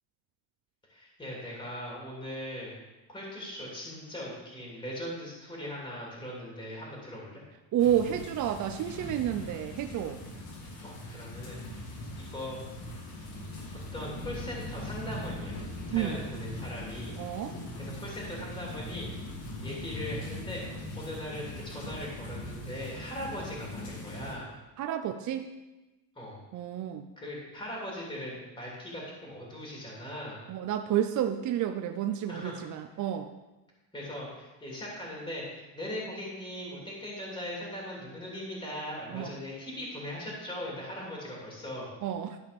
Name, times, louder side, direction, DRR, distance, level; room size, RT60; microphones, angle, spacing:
voice 1, 0.9-2.7 3.1-7.4 10.8-11.9 12.2-12.6 13.9-15.6 15.9-17.2 17.8-19.1 19.6-20.6 20.9-24.5 26.1-26.4 27.2-30.4 32.3-32.5 33.9-41.9, left 1 dB, 10° left, -4 dB, 3.0 m, -40 dB
voice 2, 7.7-10.2 15.9-16.2 17.2-17.6 24.8-25.5 26.5-27.1 30.5-33.3 39.1-39.3 42.0-42.4, right 10 dB, 40° right, 7 dB, 0.5 m, -30 dB
sound 1, 7.8-24.3, left 1 dB, 70° left, 3.1 m, -40 dB
12.5 x 5.1 x 5.2 m, 1.1 s
cardioid pair, 125°, 47 cm